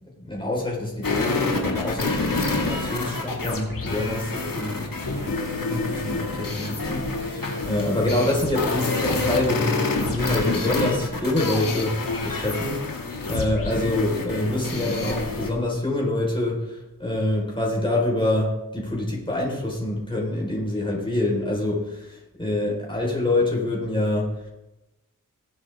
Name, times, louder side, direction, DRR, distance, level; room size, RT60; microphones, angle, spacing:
voice 1, 0.0-12.0 12.2-12.8 13.3-24.4, left 1 dB, 15° left, -4 dB, 4.5 m, -26 dB
sound 1, 1.0-15.5, left 3 dB, 70° left, 2.3 m, -27 dB
20.5 x 7.5 x 3.6 m, 0.97 s
cardioid pair, 45°, 35 cm